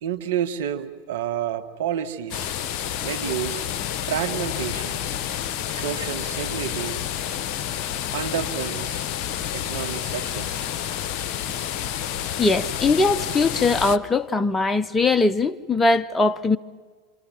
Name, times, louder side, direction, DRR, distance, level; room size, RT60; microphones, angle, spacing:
voice 1, 0.0-2.5 3.0-3.7 4.0-5.1 5.7-7.0 8.1-9.0 9.5-10.7, right 9 dB, 70° right, 1.8 m, -30 dB
sound 1, 2.3-14.0, left 10 dB, 50° left, 1.2 m, -29 dB
voice 2, 12.4-16.6, left 3 dB, 15° left, 0.9 m, -21 dB
27.5 x 27.0 x 7.5 m
hypercardioid pair, 90°, 0 cm